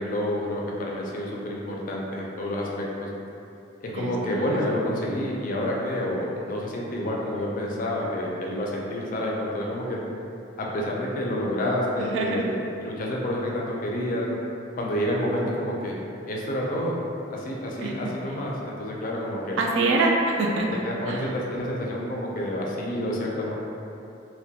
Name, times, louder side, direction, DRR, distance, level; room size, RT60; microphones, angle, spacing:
voice 1, 0.0-3.1 3.8-10.0 10.6-14.3 14.8-16.0 16.3-17.0 17.3-19.6 20.8-23.5, left 1 dB, 45° left, -2 dB, 0.3 m, -29 dB
voice 2, 4.0-4.4 12.0-12.4 17.8-17.9 19.6-21.2, right 2 dB, 75° right, 0 dB, 0.3 m, -25 dB
2.2 x 2.1 x 2.7 m, 2.8 s
head